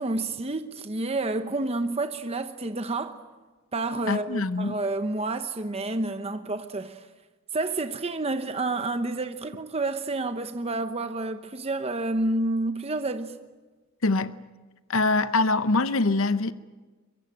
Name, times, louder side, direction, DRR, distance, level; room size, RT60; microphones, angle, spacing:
voice 1, 0.0-3.2 3.7-7.1 7.5-13.4, right 2 dB, 30° right, 0.9 m, -29 dB
voice 2, 4.1-4.8 14.0-14.4 14.9-16.5, left 3 dB, 65° left, 0.8 m, -24 dB
23.5 x 23.5 x 8.8 m
head